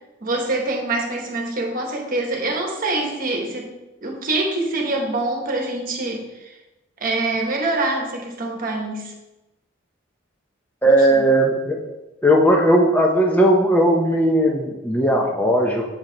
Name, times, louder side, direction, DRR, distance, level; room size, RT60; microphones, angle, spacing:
voice 1, 0.2-3.7 4.0-6.5 7.0-9.1 11.2-11.3, right 2 dB, 50° right, 1 dB, 1.2 m, -25 dB
voice 2, 10.8-11.8 12.2-15.8, right 1 dB, 10° left, 0 dB, 0.7 m, -17 dB
7.3 x 4.8 x 3.9 m, 1.0 s
head